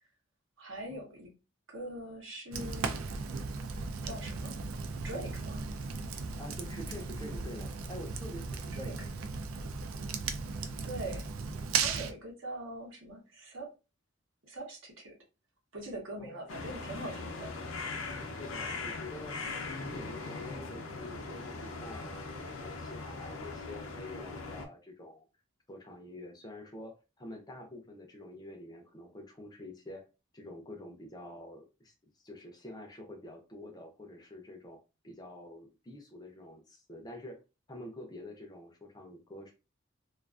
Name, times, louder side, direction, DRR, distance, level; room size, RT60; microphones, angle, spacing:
voice 1, 0.6-1.3 1.7-3.0 4.0-4.5 5.0-5.6 8.7-9.1 10.8-11.2 11.7-13.7 14.4-15.1 15.7-17.5, right 1 dB, 75° right, 0 dB, 0.9 m, -42 dB
Fire, 2.5-12.1, right 5 dB, 90° right, 0.4 m, -36 dB
voice 2, 6.4-8.9 16.2-16.3 18.4-25.2 25.7-30.0 30.3-31.9 32.2-34.8 35.0-37.4 37.7-39.5, left 1 dB, 20° left, 3 dB, 0.4 m, -47 dB
sound 1, 16.5-24.7, left 3 dB, 85° left, 0.5 m, -40 dB
2.4 x 2.3 x 2.3 m, 0.30 s
head